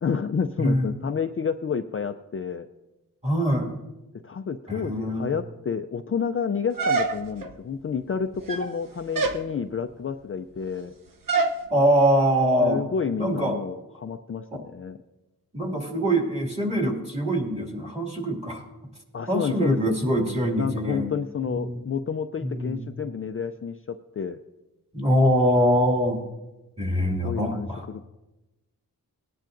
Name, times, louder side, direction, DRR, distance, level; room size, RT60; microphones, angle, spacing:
voice 1, 0.0-2.7 4.2-10.9 12.6-15.0 19.1-20.0 20.6-24.4 27.0-28.1, left 6 dB, 35° left, 7 dB, 0.4 m, -30 dB
voice 2, 3.2-3.7 4.7-5.3 11.7-12.8 13.2-13.6 14.5-14.6 15.5-18.6 19.3-21.1 21.5-21.8 22.4-22.8 24.9-26.2 26.8-27.9, equal, 15° right, 1 dB, 2.2 m, -23 dB
sound 1, 6.8-7.5 8.3-8.8 9.1-9.5 11.3-11.6, right 3 dB, 60° right, 0.9 m, -25 dB
18.5 x 10.0 x 2.6 m, 1.0 s
wide cardioid pair, 65°, 37 cm